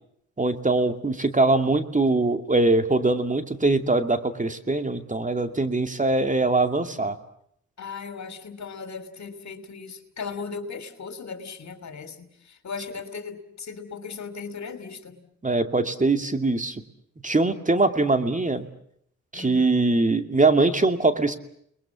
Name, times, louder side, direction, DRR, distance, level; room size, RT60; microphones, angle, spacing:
voice 1, 0.4-7.2 15.4-16.8 17.2-18.7 19.3-21.4, right 2 dB, 25° right, 8 dB, 2.5 m, -22 dB
voice 2, 7.8-15.2 19.3-19.9, left 5 dB, 60° left, 10 dB, 3.4 m, -37 dB
29.5 x 21.5 x 7.5 m, 0.69 s
cardioid pair, 60°, 31 cm